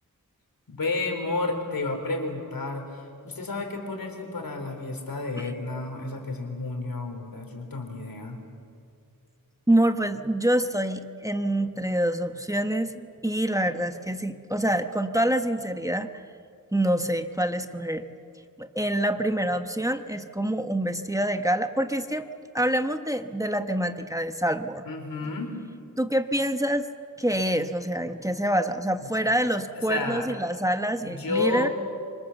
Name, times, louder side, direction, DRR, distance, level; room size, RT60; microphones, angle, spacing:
voice 1, 0.7-8.4 24.9-25.5 29.2-29.4 29.9-30.3 31.0-31.7, left 3 dB, 90° left, 4 dB, 4.0 m, -31 dB
voice 2, 9.7-16.2 16.7-18.0 18.6-22.2 22.5-24.8 26.0-26.9 27.2-31.7, right 1 dB, 10° right, 7 dB, 1.1 m, -26 dB
28.0 x 25.0 x 7.1 m, 2.3 s
wide cardioid pair, 95°, 34 cm